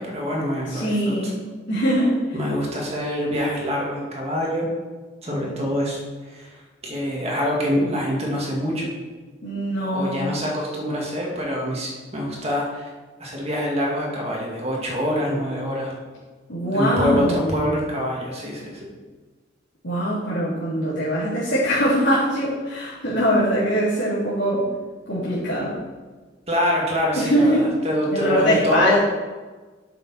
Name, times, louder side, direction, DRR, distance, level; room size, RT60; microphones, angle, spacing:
voice 1, 0.0-1.3 2.3-4.7 5.2-6.0 6.3-6.6 6.8-8.9 9.9-12.9 13.2-15.9 16.7-18.9 26.5-29.0, equal, 35° right, -2 dB, 2.0 m, -25 dB
voice 2, 0.7-1.3 1.7-2.2 9.4-10.2 16.5-17.8 19.8-24.6 25.1-25.8 27.1-27.7 28.1-29.0, equal, 70° left, -11 dB, 2.9 m, -22 dB
8.2 x 6.7 x 4.3 m, 1.3 s
head